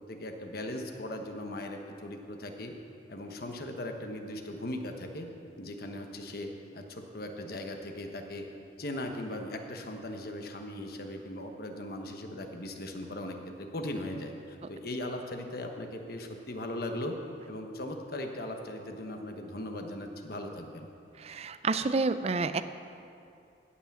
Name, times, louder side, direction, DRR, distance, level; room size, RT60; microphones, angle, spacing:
voice 1, 0.1-2.7 3.1-5.3 5.6-8.4 8.8-17.2 17.5-20.9, left 1 dB, 55° left, 4 dB, 1.1 m, -38 dB
voice 2, 21.2-22.6, right 3 dB, 35° right, 11 dB, 0.4 m, -29 dB
16.0 x 5.9 x 7.3 m, 2.6 s
head